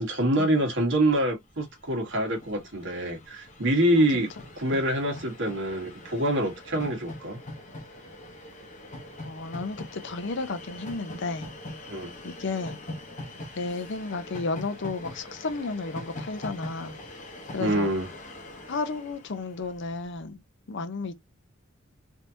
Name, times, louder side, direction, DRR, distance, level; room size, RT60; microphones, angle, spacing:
voice 1, 0.0-4.3 4.6-7.4 11.9-12.1 17.6-18.1, right 1 dB, 65° right, 1.4 m, -25 dB
Train, 1.4-1.5 1.7-20.1, left 1 dB, 35° left, 0.9 m, -43 dB
voice 2, 9.2-11.5 12.2-12.8 13.6-16.9 17.5-17.9 18.7-20.4 20.7-21.1, left 3 dB, 60° left, 0.6 m, -33 dB
3.4 x 2.8 x 2.7 m
head